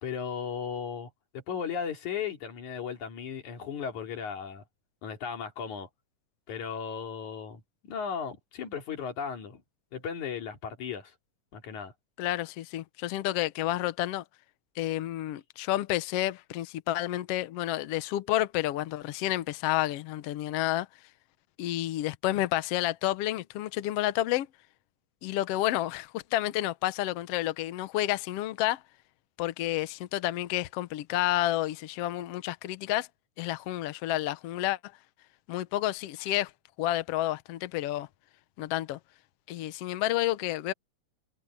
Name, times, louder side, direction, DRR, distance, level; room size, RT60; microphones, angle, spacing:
voice 1, 0.0-4.6 5.0-5.9 6.5-7.6 7.9-9.6 9.9-11.1 11.5-11.9, left 7 dB, 60° left, 4.0 m, -36 dB
voice 2, 12.2-14.2 14.8-20.9 21.6-24.5 25.2-28.8 29.4-33.1 33.4-34.8 35.5-36.5 36.8-38.1 38.6-39.0 39.5-40.7, left 14 dB, 80° left, 1.4 m, -30 dB
omnidirectional pair, 3.9 m